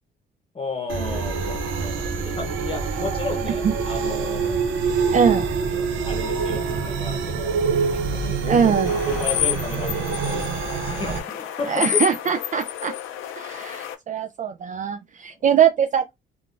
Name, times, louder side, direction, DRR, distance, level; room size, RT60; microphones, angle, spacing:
voice 1, 0.5-4.6 5.7-8.7 9.1-12.0, left 3 dB, 25° left, 0.8 m, -33 dB
sound 1, 0.9-11.2, right 5 dB, 80° right, 0.7 m, -25 dB
voice 2, 5.1-5.5 8.5-8.9 11.7-12.9 13.4-16.1, right 7 dB, 40° right, 0.4 m, -21 dB
sound 2, 8.9-13.9, left 12 dB, 85° left, 0.5 m, -29 dB
3.6 x 2.4 x 2.5 m
cardioid pair, 90°, 20 cm